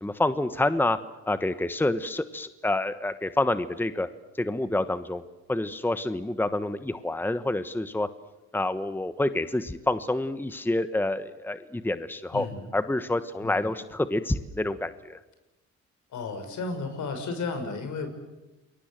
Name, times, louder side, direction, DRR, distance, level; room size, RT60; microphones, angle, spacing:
voice 1, 0.0-1.0 1.3-4.1 4.4-5.2 5.5-8.1 8.5-12.4 12.7-15.2, left 2 dB, 5° left, 11 dB, 1.2 m, -28 dB
voice 2, 12.3-12.7 13.4-13.7 16.1-18.1, left 4 dB, 75° left, 7 dB, 5.7 m, -33 dB
28.5 x 22.5 x 7.6 m, 1.0 s
cardioid pair, 90°, 30 cm